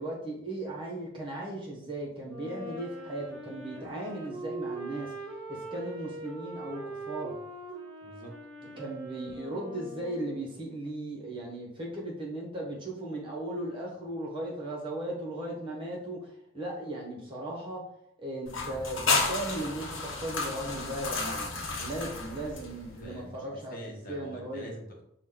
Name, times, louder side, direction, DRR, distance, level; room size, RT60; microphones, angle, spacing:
voice 1, 0.0-5.1 5.5-7.3 8.6-17.8 18.2-23.8 24.1-24.7, right 1 dB, 25° right, -3 dB, 1.1 m, -37 dB
Wind instrument woodwind instrument, 2.2-10.6, right 2 dB, 5° left, 1.4 m, -42 dB
voice 2, 8.0-8.4 22.8-23.4 23.7-25.0, equal, 45° left, -1 dB, 0.9 m, -44 dB
sound 1, 18.5-23.0, left 3 dB, 85° left, 0.8 m, -32 dB
5.0 x 2.3 x 3.8 m, 0.76 s
head